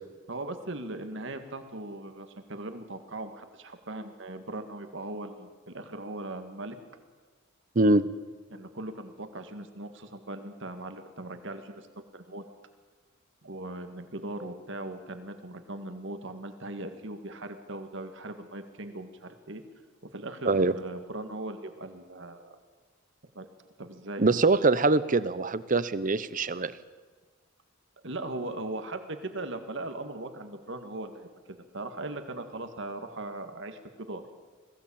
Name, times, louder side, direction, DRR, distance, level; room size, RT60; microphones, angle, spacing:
voice 1, 0.3-6.8 8.5-11.9 12.1-12.5 13.4-19.6 20.1-22.6 23.4-23.5 23.8-24.4 28.0-34.3, right 2 dB, 65° right, 7 dB, 2.0 m, -39 dB
voice 2, 24.2-26.7, right 3 dB, 40° right, 15 dB, 0.8 m, -23 dB
21.0 x 16.0 x 8.7 m, 1.4 s
head